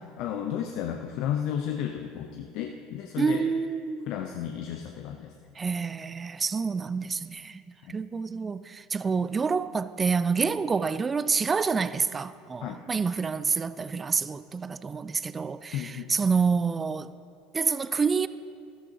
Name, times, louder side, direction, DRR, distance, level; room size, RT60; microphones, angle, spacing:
voice 1, 0.0-3.4 4.1-5.3 7.8-7.9 12.6-12.8 15.7-16.1, left 9 dB, 55° left, 0.6 m, -33 dB
voice 2, 3.2-4.1 5.6-7.6 7.9-17.1 17.5-18.3, right 5 dB, 25° right, 0.4 m, -28 dB
14.0 x 14.0 x 2.9 m
figure-of-eight pair, 70°, 0 cm